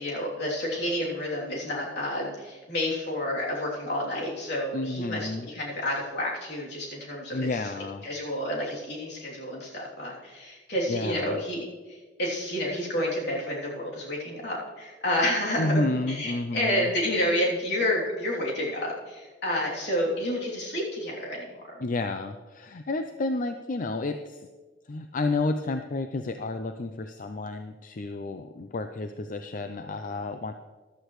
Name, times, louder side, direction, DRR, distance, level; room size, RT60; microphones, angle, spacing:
voice 1, 0.0-21.8, left 1 dB, 65° left, -4 dB, 3.1 m, -30 dB
voice 2, 4.7-5.5 7.3-8.0 10.9-11.4 15.6-16.9 21.8-24.5 24.9-30.5, left 2 dB, 50° left, 7 dB, 0.5 m, -31 dB
14.5 x 11.5 x 3.1 m, 1.3 s
head